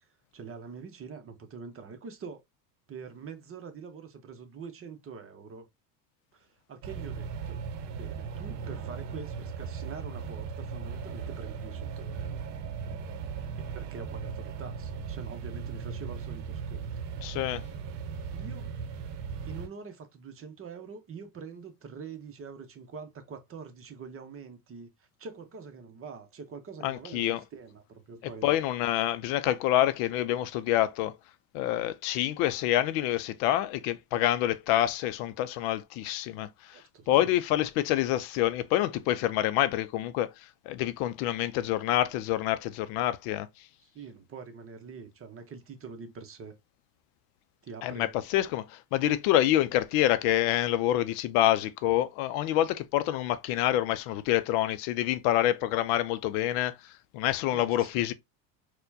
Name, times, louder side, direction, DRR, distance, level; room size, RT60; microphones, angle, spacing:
voice 1, 0.0-2.4 2.9-5.7 6.3-7.6 7.9-12.5 13.5-16.9 18.3-18.7 19.4-28.5 36.7-37.4 43.8-46.5 47.6-48.1 57.5-57.9, right 5 dB, 30° right, 0.7 m, -45 dB
sound 1, 6.8-19.7, right 6 dB, 60° right, 0.8 m, -37 dB
voice 2, 17.2-17.6 26.8-27.4 28.4-31.1 31.5-36.8 37.1-40.3 40.7-43.5 47.8-58.1, left 13 dB, 65° left, 0.5 m, -27 dB
4.2 x 2.2 x 2.6 m
supercardioid pair, 95°, 48 cm